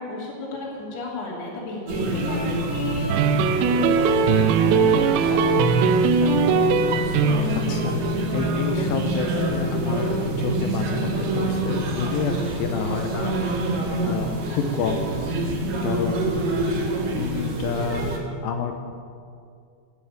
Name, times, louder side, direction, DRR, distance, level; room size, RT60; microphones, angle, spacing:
voice 1, 0.0-3.3 3.6-7.5 14.5-14.9, left 2 dB, 65° left, -5 dB, 4.7 m, -34 dB
sound 1, 1.9-18.2, right 1 dB, 65° right, 3.8 m, -26 dB
sound 2, 3.1-7.7, right 5 dB, 85° right, 2.9 m, -20 dB
voice 2, 7.7-8.0 8.3-13.7 14.0-15.1 15.8-16.5 17.1-18.1 18.4-18.7, left 5 dB, 80° left, 5 dB, 2.1 m, -29 dB
11.5 x 11.5 x 8.7 m, 2.3 s
omnidirectional pair, 5.2 m